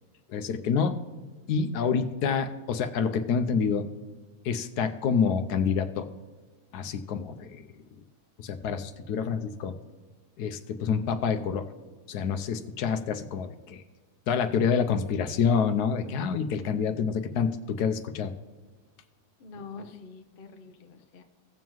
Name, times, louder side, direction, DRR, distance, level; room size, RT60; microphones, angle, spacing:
voice 1, 0.3-1.0 1.5-3.9 4.4-6.1 6.7-7.6 8.4-9.7 10.4-11.7 12.1-13.8 14.3-18.3, left 6 dB, 90° left, 9 dB, 1.2 m, -27 dB
voice 2, 19.4-21.2, left 4 dB, 45° left, 6 dB, 0.8 m, -45 dB
17.0 x 7.3 x 3.0 m, 1.4 s
omnidirectional pair, 1.7 m